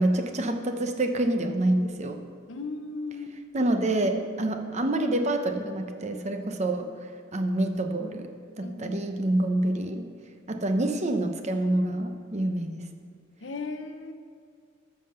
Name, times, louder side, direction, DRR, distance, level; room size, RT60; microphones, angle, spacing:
voice 1, 0.0-2.2 3.5-8.3 8.6-10.1 10.5-12.8, right 1 dB, 35° right, 6 dB, 0.8 m, -27 dB
voice 2, 2.5-3.3 8.6-9.3 13.4-14.1, left 3 dB, 75° left, 8 dB, 0.8 m, -37 dB
13.5 x 5.7 x 6.6 m, 2.3 s
head